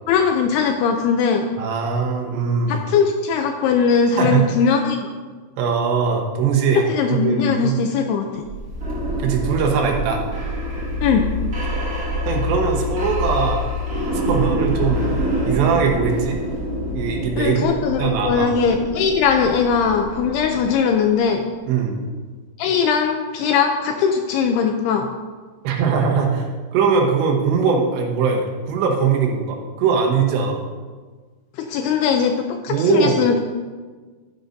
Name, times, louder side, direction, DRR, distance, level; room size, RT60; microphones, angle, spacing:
voice 1, 0.1-1.4 2.7-5.1 6.7-8.5 11.0-11.2 17.4-21.4 22.6-25.1 31.6-33.4, left 6 dB, 80° left, 4 dB, 2.4 m, -20 dB
voice 2, 1.6-2.8 4.2-4.4 5.6-6.8 7.1-7.8 9.2-10.2 12.3-13.6 14.3-16.4 16.9-17.7 18.0-18.5 21.7-22.0 25.6-30.6 32.7-33.1, right 6 dB, 80° right, 1 dB, 3.3 m, -21 dB
sound 1, 8.4-21.2, equal, 55° right, 0.9 m, -26 dB
11.5 x 10.5 x 2.6 m, 1.4 s
omnidirectional pair, 5.1 m